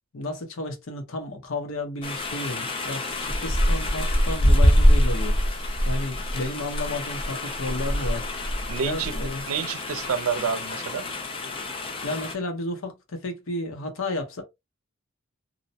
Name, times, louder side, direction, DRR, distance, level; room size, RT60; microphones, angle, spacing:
voice 1, 0.1-5.4 5.8-8.3 8.8-9.6 12.0-14.4, left 2 dB, 75° left, 0.8 m, -32 dB
sound 1, 2.0-12.3, equal, 25° left, 0.4 m, -24 dB
voice 2, 8.7-9.1 9.4-11.1, right 6 dB, 80° right, 0.4 m, -28 dB
2.6 x 2.0 x 2.7 m
head